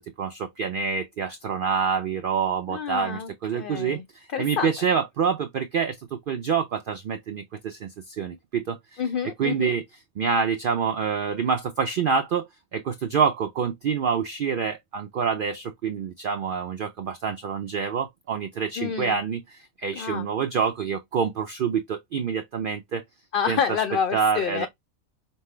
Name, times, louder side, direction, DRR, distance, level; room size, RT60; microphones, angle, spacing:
voice 1, 0.0-9.0 9.4-9.8 10.2-12.5 12.7-23.0 23.5-23.8 24.1-24.7, right 6 dB, 80° right, 0.4 m, -27 dB
voice 2, 2.7-4.0 4.3-4.7 9.0-9.7 18.8-19.2 19.9-20.3 23.3-24.7, left 7 dB, 75° left, 0.5 m, -28 dB
5.4 x 2.0 x 3.2 m
omnidirectional pair, 1.4 m